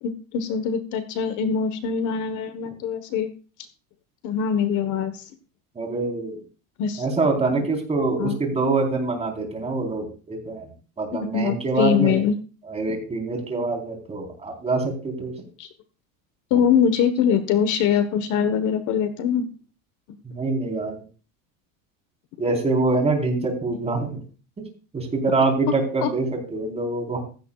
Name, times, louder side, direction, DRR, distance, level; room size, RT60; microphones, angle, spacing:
voice 1, 0.0-3.3 4.2-5.3 6.8-7.0 7.6-7.7 8.2-8.3 11.1-12.3 15.6-15.7 16.5-19.4 26.0-26.1, left 7 dB, 45° left, 10 dB, 1.3 m, -23 dB
voice 2, 5.8-6.4 7.0-10.7 11.0-12.2 12.6-15.3 16.5-16.6 20.2-20.9 22.4-24.2 24.9-27.2, right 3 dB, 15° right, 2 dB, 4.0 m, -25 dB
15.5 x 15.5 x 2.4 m, 0.36 s
supercardioid pair, 150°, 40 cm